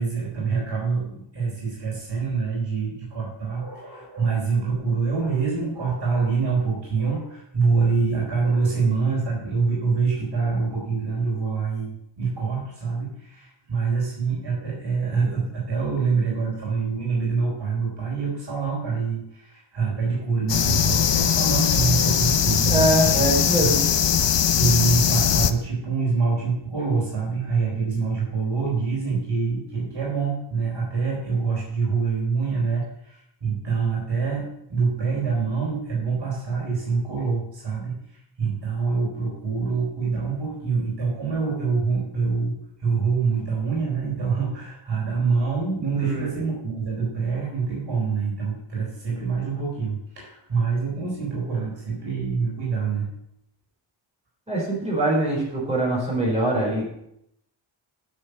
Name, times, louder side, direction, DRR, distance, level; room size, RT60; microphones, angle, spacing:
voice 1, 0.0-23.3 23.6-23.7 24.5-42.5 42.8-53.1, right 5 dB, 60° right, -4 dB, 4.3 m, -25 dB
sound 1, 20.5-25.5, left 9 dB, 60° left, 0.7 m, -20 dB
voice 2, 22.6-23.8 45.9-46.2 54.5-56.9, right 1 dB, 15° right, -5 dB, 4.5 m, -23 dB
10.0 x 6.6 x 6.7 m, 0.78 s
wide cardioid pair, 170°, 48 cm